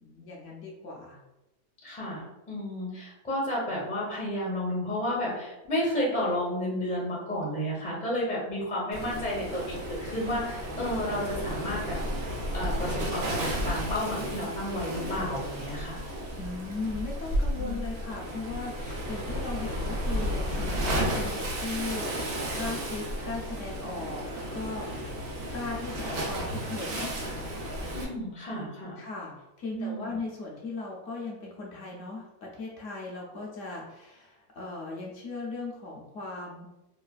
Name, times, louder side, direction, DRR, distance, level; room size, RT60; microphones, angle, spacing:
voice 1, 0.0-1.2 16.4-25.2 25.5-27.1 29.0-36.7, left 3 dB, 65° left, -3 dB, 0.8 m, -38 dB
voice 2, 1.8-12.0 12.5-16.0 17.6-17.7 27.9-29.0 29.7-30.1, left 1 dB, 10° left, -5 dB, 0.4 m, -32 dB
Waves surf, 8.9-28.0, equal, 85° right, 1.2 m, -33 dB
3.1 x 2.2 x 2.3 m, 0.97 s
omnidirectional pair, 1.6 m